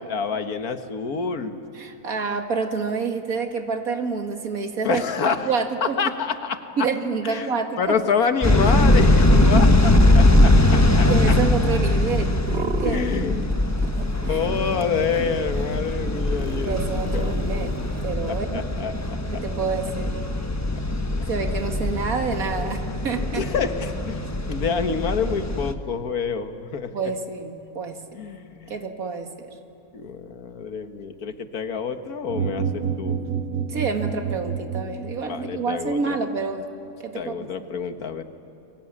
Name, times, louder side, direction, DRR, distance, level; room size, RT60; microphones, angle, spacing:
voice 1, 0.0-1.6 4.8-5.5 5.8-6.8 7.2-10.5 11.0-11.1 12.8-13.6 14.3-17.4 18.3-18.9 19.3-19.4 22.6-22.7 23.4-26.9 28.1-28.7 29.9-33.2 35.3-36.2 37.1-38.2, left 6 dB, 80° left, 8 dB, 1.9 m, -27 dB
voice 2, 1.8-6.0 6.8-8.0 11.1-13.2 13.5-13.9 14.3-14.4 16.6-18.6 19.3-20.2 21.3-23.5 26.9-28.0 28.7-29.3 33.7-36.7 37.0-37.5, right 4 dB, 75° right, 5 dB, 2.4 m, -28 dB
sound 1, 8.4-25.7, left 1 dB, 10° left, 1.1 m, -21 dB
sound 2, 12.3-13.5 13.8-18.1, right 3 dB, 50° right, 2.0 m, -35 dB
sound 3, 32.3-35.5, right 7 dB, 90° right, 1.6 m, -28 dB
30.0 x 22.5 x 8.7 m, 2.7 s
omnidirectional pair, 1.5 m